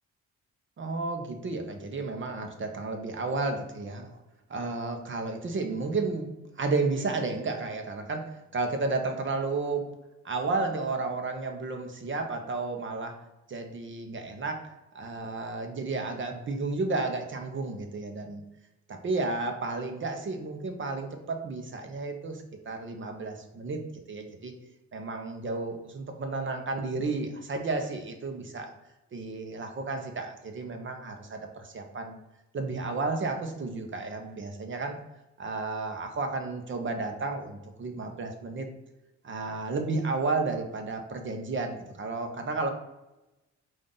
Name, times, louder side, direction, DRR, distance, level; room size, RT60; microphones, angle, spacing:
voice 1, 0.8-4.1 4.5-9.9 10.2-13.2 13.5-14.7 14.9-18.4 18.9-23.8 24.1-24.5 24.9-28.7 29.1-32.2 32.5-35.0 35.4-38.7 39.2-42.7, right 3 dB, 40° right, 5 dB, 0.8 m, -32 dB
5.2 x 2.6 x 3.9 m, 0.97 s
cardioid pair, 90°, 30 cm